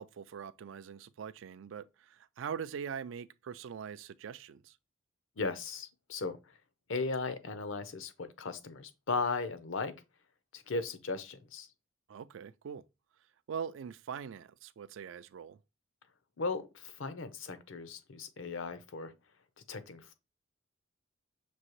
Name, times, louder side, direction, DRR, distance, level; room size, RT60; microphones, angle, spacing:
voice 1, 0.0-4.8 12.1-12.8 13.5-15.6, right 7 dB, 70° right, 0.3 m, -42 dB
voice 2, 5.4-6.4 6.9-9.9 10.5-11.7 16.4-19.1 19.7-20.1, left 3 dB, 75° left, 0.7 m, -37 dB
6.1 x 2.7 x 3.0 m
head